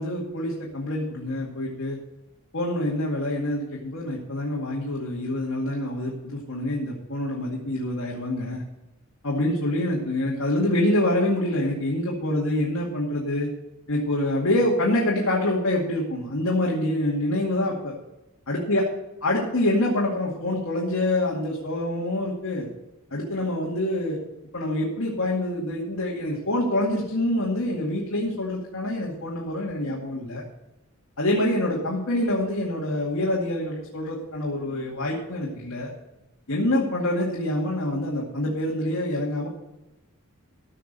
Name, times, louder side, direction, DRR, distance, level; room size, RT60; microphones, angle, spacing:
voice 1, 0.0-2.0 2.5-8.6 9.2-13.5 13.9-17.9 18.5-18.8 19.2-22.7 23.1-24.2 24.5-30.4 31.2-35.9 36.5-39.5, left 1 dB, 80° left, -3 dB, 2.3 m, -26 dB
14.5 x 5.8 x 6.8 m, 1.0 s
head